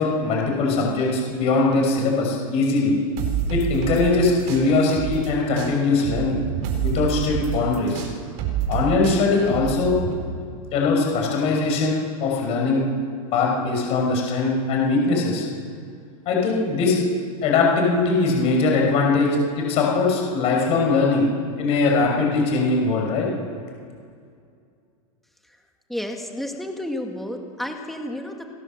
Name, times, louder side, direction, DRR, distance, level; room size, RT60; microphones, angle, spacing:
voice 1, 0.0-3.0 3.5-6.4 6.8-8.1 8.7-10.0 10.7-12.8 13.3-15.5 16.3-17.0 17.4-21.3 21.6-23.3, left 3 dB, 35° left, 0 dB, 6.0 m, -21 dB
sound 1, 3.2-5.3 5.6-10.1, right 8 dB, 40° right, 4.4 m, -27 dB
voice 2, 25.9-28.4, left 1 dB, ahead, 2 dB, 2.2 m, -31 dB
29.0 x 18.0 x 7.6 m, 2.3 s
supercardioid pair, 160°, 19 cm